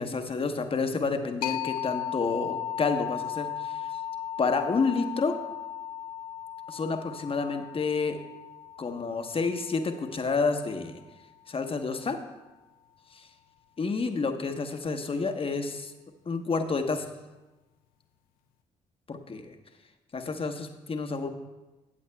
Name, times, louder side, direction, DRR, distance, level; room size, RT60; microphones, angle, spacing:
voice 1, 0.0-3.9 4.4-5.4 6.7-8.2 8.8-11.0 11.5-12.2 13.1-13.3 13.8-15.9 16.3-17.1 19.1-19.5 20.1-21.3, left 4 dB, 40° left, 6 dB, 1.0 m, -29 dB
sound 1, 1.4-10.8, left 10 dB, 75° left, 0.4 m, -36 dB
14.5 x 8.4 x 2.2 m, 1.1 s
hypercardioid pair, 50°, 15 cm